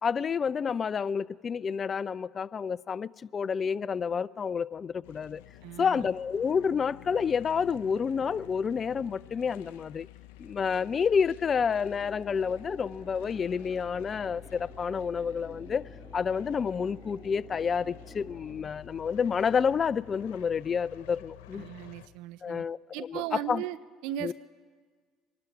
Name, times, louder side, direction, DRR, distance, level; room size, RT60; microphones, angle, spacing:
voice 1, 0.0-5.4 5.8-10.1 10.4-15.8 16.1-21.7 22.4-23.6 24.2-24.3, left 6 dB, 40° left, 0.4 m, -29 dB
sound 1, 5.0-22.1, left 14 dB, 80° left, 0.7 m, -50 dB
voice 2, 5.6-6.1 21.5-22.6 22.9-23.8 24.0-24.3, right 13 dB, 75° right, 0.6 m, -37 dB
sound 2, 11.6-18.8, right 2 dB, 20° right, 1.2 m, -52 dB
24.5 x 11.5 x 4.7 m
hypercardioid pair, 70°, 0 cm